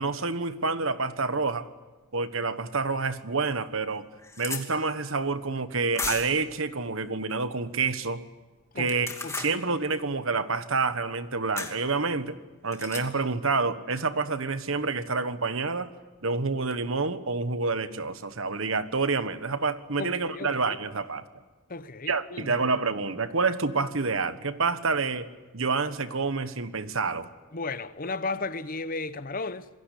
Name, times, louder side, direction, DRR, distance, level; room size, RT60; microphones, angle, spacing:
voice 1, 0.0-1.7 2.1-4.0 4.4-8.2 8.8-9.1 9.3-12.4 12.6-15.9 16.2-21.2 22.1-25.3 25.5-27.3, right 4 dB, 65° right, 1.4 m, -28 dB
sound 1, 3.0-3.1 3.6-3.7 3.9-4.6 5.9-6.4 8.8-9.5 11.6-11.8 12.7-13.0, left 4 dB, 15° left, 2.6 m, -34 dB
voice 2, 8.7-9.6 20.0-20.6 21.7-22.6 27.5-29.7, left 3 dB, 40° left, 0.9 m, -35 dB
28.0 x 21.5 x 8.4 m
head